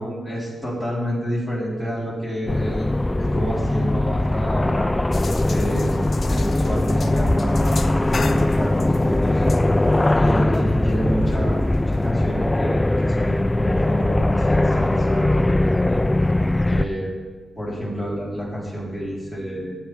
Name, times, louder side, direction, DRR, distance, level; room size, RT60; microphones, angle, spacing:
voice 1, 0.0-2.9 3.2-5.0 5.5-9.4 10.1-16.0 16.7-17.1 17.6-19.8, equal, 5° right, -6 dB, 4.0 m, -29 dB
sound 1, 2.5-16.9, left 1 dB, 15° left, 0.3 m, -20 dB
sound 2, 5.1-12.1, left 5 dB, 50° left, 0.7 m, -38 dB
18.0 x 10.5 x 3.5 m, 1.4 s
wide cardioid pair, 115°, 0 cm